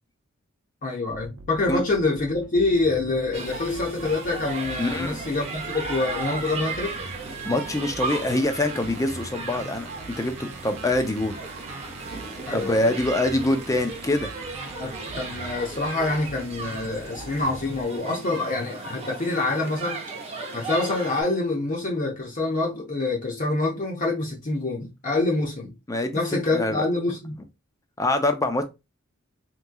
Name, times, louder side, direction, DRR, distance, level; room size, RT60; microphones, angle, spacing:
voice 1, 0.8-7.0 12.4-12.9 14.8-20.0 20.5-25.7 26.1-27.4, left 2 dB, 40° left, 0.7 m, -26 dB
sound 1, 1.1-17.8, right 2 dB, 65° right, 0.6 m, -42 dB
sound 2, 3.3-21.2, right 3 dB, 30° right, 0.7 m, -36 dB
voice 2, 4.8-5.2 7.5-9.9 10.2-11.4 12.5-14.3 25.9-26.2 26.5-26.8 28.0-28.6, left 1 dB, 15° left, 0.4 m, -24 dB
3.5 x 3.0 x 2.2 m
head